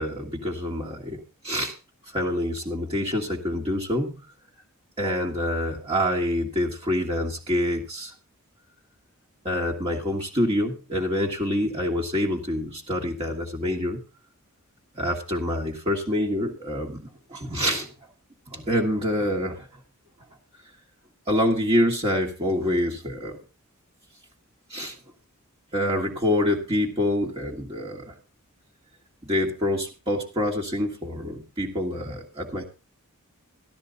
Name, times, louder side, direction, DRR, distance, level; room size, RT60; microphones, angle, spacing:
voice 1, 0.0-1.7 2.1-4.2 5.0-8.1 9.5-14.0 15.0-17.9 18.5-19.7 21.3-23.4 24.7-25.0 25.7-28.1 29.2-32.6, left 1 dB, 25° right, -1 dB, 1.7 m, -26 dB
14.0 x 12.5 x 4.0 m, 0.31 s
head